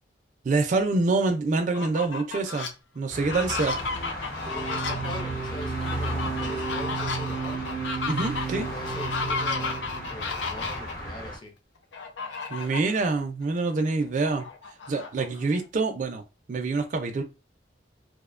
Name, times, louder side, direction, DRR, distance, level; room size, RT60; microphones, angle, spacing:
voice 1, 0.4-2.7 3.0-3.8 8.1-8.7 12.5-14.5 14.9-16.2 16.5-17.2, right 3 dB, 40° right, 5 dB, 0.3 m, -26 dB
Fowl, 1.6-2.7 3.2-10.9 11.9-13.0 13.4-13.5 13.9-15.6, left 4 dB, 70° left, 0.5 m, -33 dB
sound 1, 3.1-11.4, equal, 50° left, 0.9 m, -36 dB
voice 2, 4.5-7.7 8.6-11.5, left 1 dB, 25° left, 2 dB, 0.5 m, -42 dB
sound 2, 4.5-10.1, right 6 dB, 85° right, 0.6 m, -34 dB
2.4 x 2.1 x 2.4 m, 0.28 s
head